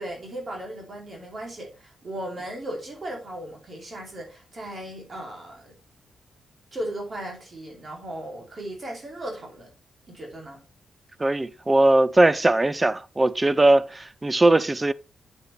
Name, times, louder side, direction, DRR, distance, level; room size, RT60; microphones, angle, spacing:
voice 1, 0.0-5.8 6.7-9.7 10.1-10.6, right 1 dB, 40° right, 2.8 m, -36 dB
voice 2, 11.2-14.9, right 2 dB, 20° right, 0.5 m, -20 dB
8.1 x 7.6 x 3.3 m
cardioid pair, 105°, 0 cm